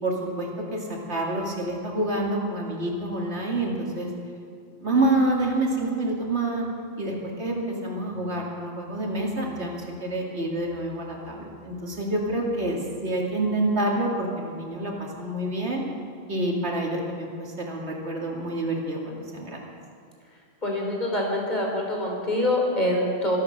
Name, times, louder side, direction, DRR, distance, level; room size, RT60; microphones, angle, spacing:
voice 1, 0.0-4.1 4.8-6.7 7.0-15.8 16.3-19.6, right 1 dB, 80° right, -1 dB, 2.7 m, -27 dB
voice 2, 20.6-23.4, left 1 dB, 40° left, -1 dB, 3.7 m, -25 dB
25.0 x 8.5 x 6.6 m, 2.3 s
omnidirectional pair, 1.1 m